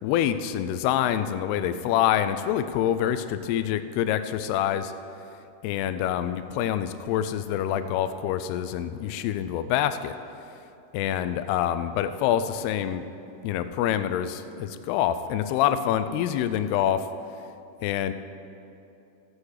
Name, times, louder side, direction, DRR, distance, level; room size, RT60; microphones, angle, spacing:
voice 1, 0.0-4.9 5.6-10.1 10.9-13.1 13.4-17.1 17.8-18.1, left 10 dB, 85° left, 11 dB, 2.5 m, -26 dB
16.0 x 8.4 x 4.8 m, 2.8 s
omnidirectional pair, 4.7 m